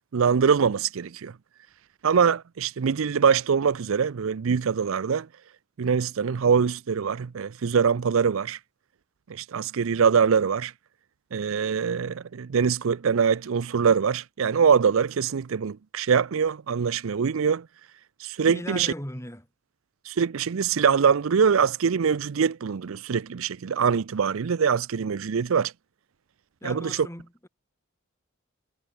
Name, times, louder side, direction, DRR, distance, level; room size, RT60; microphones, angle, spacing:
voice 1, 0.1-1.3 2.0-5.3 5.8-8.6 9.3-10.7 11.3-17.7 18.2-18.9 20.1-25.7 26.6-27.1, right 6 dB, 70° right, 0.5 m, -23 dB
voice 2, 18.5-19.5 26.6-27.5, left 1 dB, 15° left, 7.3 m, -38 dB
head